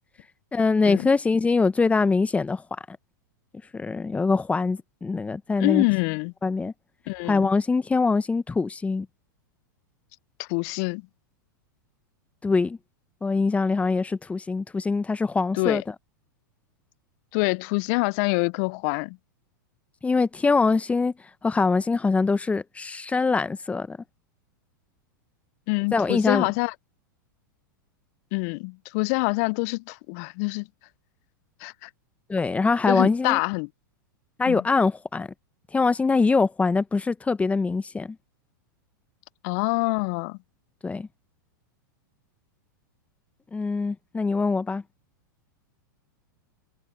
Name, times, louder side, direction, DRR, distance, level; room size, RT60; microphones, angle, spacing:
voice 1, 0.5-2.6 2.9-3.0 3.7-5.8 6.4-6.7 7.3-9.1 12.4-12.8 13.2-15.8 20.0-21.1 21.4-24.0 25.9-26.5 32.3-33.4 34.4-35.3 35.7-38.2 40.8-41.1 43.5-44.8, left 4 dB, 10° left, 1.0 m, -23 dB
voice 2, 5.6-6.3 7.1-7.5 10.4-11.0 15.5-15.8 17.3-19.2 25.7-26.7 28.3-30.7 31.6-31.9 32.9-33.7 34.5-34.6 39.4-40.4, left 31 dB, 50° left, 0.4 m, -26 dB
hypercardioid pair, 110°, 11 cm